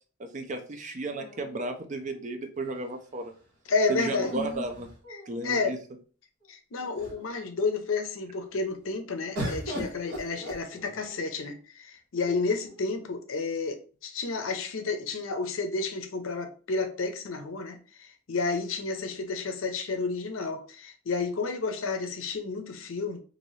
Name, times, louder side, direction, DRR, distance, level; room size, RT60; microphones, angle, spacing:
voice 1, 0.2-3.3 3.9-4.9 5.3-5.8, right 2 dB, 40° right, 6 dB, 0.5 m, -34 dB
sound 1, 1.0-2.1 4.1-5.6 6.4-6.5 6.8-7.4 9.3-11.2 12.2-12.8, equal, 80° right, 1.4 m, -38 dB
voice 2, 3.7-4.4 5.1-5.8 6.5-13.8 14.0-23.2, left 4 dB, 80° left, 7 dB, 0.6 m, -31 dB
2.8 x 2.5 x 3.1 m, 0.40 s
head